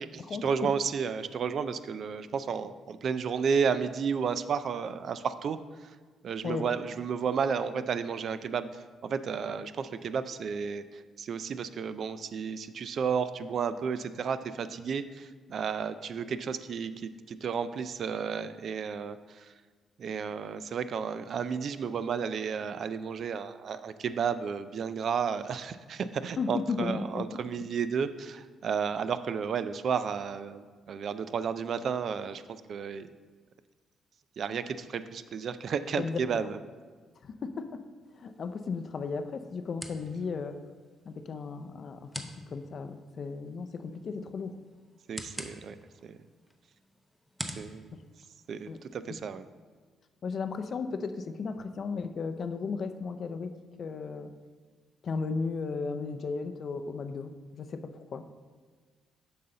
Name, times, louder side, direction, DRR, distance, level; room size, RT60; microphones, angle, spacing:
voice 1, 0.0-6.0 6.2-19.5 20.0-33.1 34.4-36.6 45.1-45.8 46.0-46.2 47.4-48.0 48.5-49.4, right 6 dB, 60° right, 12 dB, 0.4 m, -32 dB
voice 2, 26.4-27.2 36.0-36.2 37.2-37.8 38.2-40.6 41.1-44.6 48.7-48.8 49.1-49.2 50.2-54.3 55.0-58.2, left 4 dB, 50° left, 9 dB, 0.5 m, -35 dB
sound 1, 38.0-49.0, equal, ahead, 0.7 m, -47 dB
7.7 x 5.6 x 3.8 m, 1.5 s
cardioid pair, 90°, 0 cm